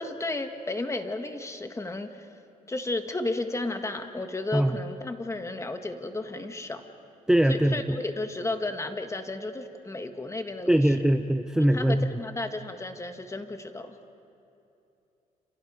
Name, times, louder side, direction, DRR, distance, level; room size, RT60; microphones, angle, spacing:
voice 1, 0.0-2.2 2.7-6.8 7.5-10.9 11.6-14.0, left 2 dB, 20° left, 7 dB, 1.8 m, -33 dB
voice 2, 7.3-8.0 10.7-12.1, right 1 dB, 5° right, 8 dB, 0.7 m, -22 dB
30.0 x 28.0 x 5.2 m, 2.8 s
cardioid pair, 100°, 15 cm